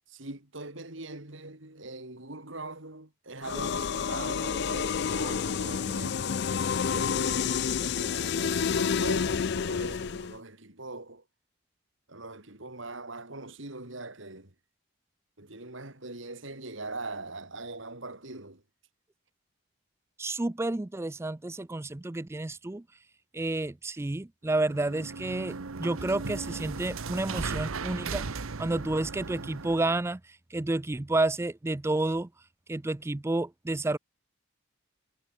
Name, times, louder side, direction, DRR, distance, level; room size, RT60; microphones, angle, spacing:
voice 1, 0.1-6.5 6.8-11.2 12.1-14.5 15.4-18.6, right 2 dB, 65° right, 3.7 m, -41 dB
sound 1, 3.4-10.4, left 6 dB, 55° left, 0.4 m, -29 dB
voice 2, 20.2-22.8 23.3-30.2 30.5-32.3 32.7-34.0, right 2 dB, 15° right, 0.4 m, -30 dB
sound 2, 24.5-30.0, right 4 dB, 90° right, 1.0 m, -37 dB
head